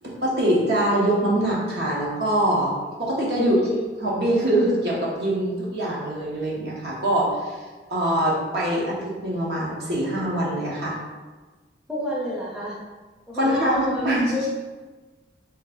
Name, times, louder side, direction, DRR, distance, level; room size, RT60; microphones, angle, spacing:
voice 1, 0.0-2.7 3.0-3.6 4.0-7.6 7.9-11.0 13.3-14.4, right 1 dB, 65° right, -4 dB, 1.0 m, -23 dB
voice 2, 3.4-3.9 11.9-12.8 13.3-14.5, left 1 dB, 5° right, -6 dB, 0.6 m, -30 dB
3.3 x 3.1 x 3.8 m, 1.3 s
head